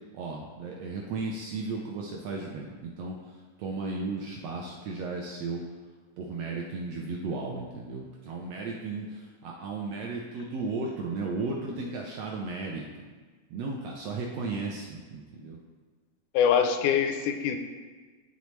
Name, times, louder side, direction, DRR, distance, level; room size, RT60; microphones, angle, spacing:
voice 1, 0.1-3.2 3.6-5.6 6.2-13.1 13.5-15.6, right 3 dB, 75° right, -1 dB, 1.5 m, -35 dB
voice 2, 16.3-17.6, left 8 dB, 85° left, 7 dB, 2.0 m, -24 dB
11.5 x 4.0 x 3.1 m, 1.4 s
omnidirectional pair, 3.4 m